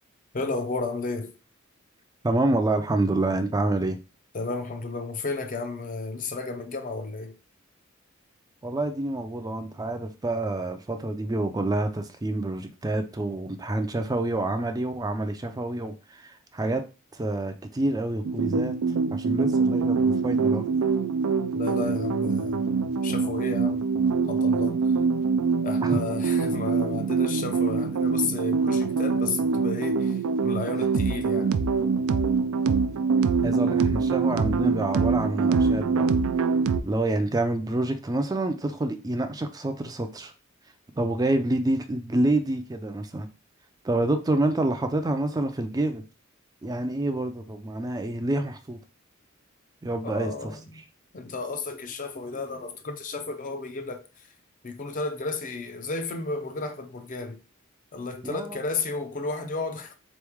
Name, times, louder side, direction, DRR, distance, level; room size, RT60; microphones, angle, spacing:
voice 1, 0.3-1.3 4.3-7.4 21.5-23.9 24.2-24.9 25.6-31.5 50.0-50.6 51.1-54.3 54.6-57.4 57.9-60.0, left 3 dB, 40° left, 0.6 m, -33 dB
voice 2, 2.2-4.0 8.6-16.8 17.1-20.7 25.8-26.0 33.4-36.1 36.8-40.3 41.0-43.3 43.8-46.0 46.6-48.8 49.8-50.5 58.2-58.6, right 2 dB, 20° right, 0.4 m, -27 dB
sound 1, 18.2-36.8, right 5 dB, 85° right, 0.4 m, -24 dB
3.9 x 3.1 x 3.4 m
head